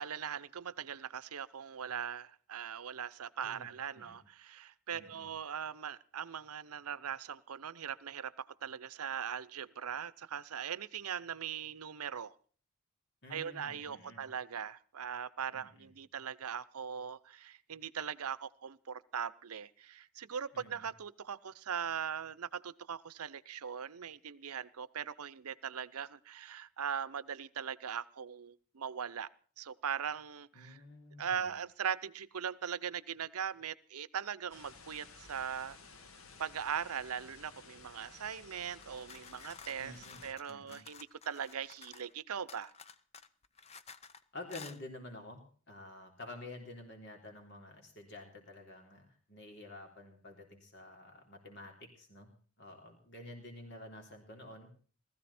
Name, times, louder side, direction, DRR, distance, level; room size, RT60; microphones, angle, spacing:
voice 1, 0.0-12.3 13.3-29.3 29.6-30.8 31.2-35.8 36.4-39.9 40.2-42.7, right 7 dB, 90° right, 17 dB, 0.7 m, -40 dB
voice 2, 4.9-5.3 13.2-14.2 15.5-15.9 20.5-20.9 30.5-31.5 39.8-40.2 40.5-40.8 44.3-45.4 45.7-52.3 52.6-54.7, left 2 dB, 50° left, 2 dB, 3.6 m, -50 dB
sound 1, 34.5-40.3, left 4 dB, 70° left, 1.5 m, -55 dB
sound 2, 38.8-42.1 42.5-44.2 44.5-44.8, left 5 dB, 30° left, 0.7 m, -53 dB
19.5 x 14.5 x 4.3 m, 0.42 s
head